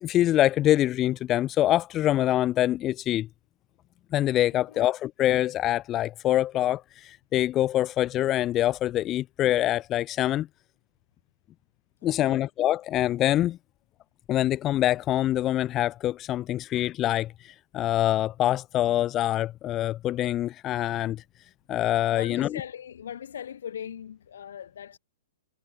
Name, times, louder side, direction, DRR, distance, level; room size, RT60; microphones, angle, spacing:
voice 1, 0.0-3.3 4.1-10.5 12.0-13.6 14.3-21.2 21.7-22.6, left 13 dB, 25° left, 0.3 m, -25 dB
voice 2, 12.0-12.4 22.1-25.0, left 9 dB, 70° left, 3.9 m, -40 dB
hypercardioid pair, 145°, 0 cm